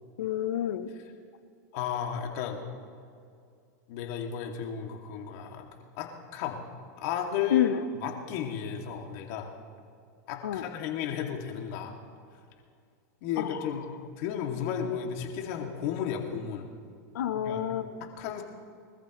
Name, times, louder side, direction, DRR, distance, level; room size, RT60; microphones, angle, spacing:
voice 1, 0.2-0.9 7.5-7.8 10.4-10.7 13.4-13.8 17.1-18.0, left 11 dB, 80° left, 11 dB, 0.9 m, -29 dB
voice 2, 1.7-2.6 3.9-5.7 6.0-6.6 7.0-7.7 8.0-9.5 10.3-12.0 13.2-13.8 14.2-16.7 17.3-17.6 18.0-18.4, left 8 dB, 60° left, 2 dB, 2.4 m, -33 dB
24.5 x 14.0 x 3.2 m, 2.3 s
hypercardioid pair, 120°, 9 cm